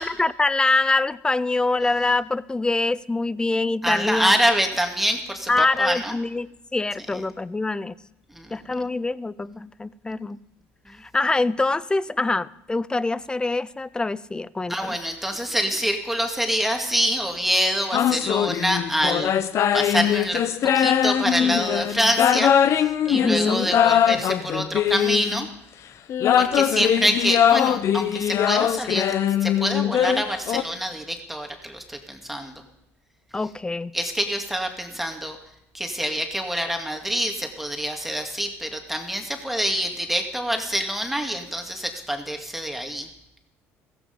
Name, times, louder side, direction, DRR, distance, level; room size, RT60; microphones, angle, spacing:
voice 1, 0.0-4.3 5.5-7.9 8.5-10.4 11.0-15.0 23.1-23.7 33.3-33.9, left 3 dB, 15° left, 19 dB, 0.6 m, -24 dB
voice 2, 3.8-6.2 7.1-7.2 8.3-8.6 14.7-19.3 19.7-20.4 20.7-25.5 26.4-29.1 29.4-32.6 33.9-35.4 35.7-43.1, equal, 5° right, 3 dB, 2.4 m, -26 dB
sound 1, 17.9-25.5 26.1-30.6, left 9 dB, 55° left, 1.0 m, -21 dB
15.5 x 15.0 x 5.5 m, 0.81 s
supercardioid pair, 95°, 6 cm